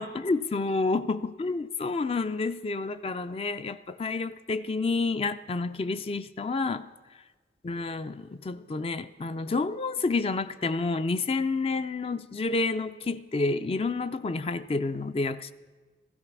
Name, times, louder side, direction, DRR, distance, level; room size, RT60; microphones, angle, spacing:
voice 1, 0.0-6.9 7.6-15.5, left 3 dB, 35° left, 0.4 m, -29 dB
15.5 x 13.0 x 6.1 m
head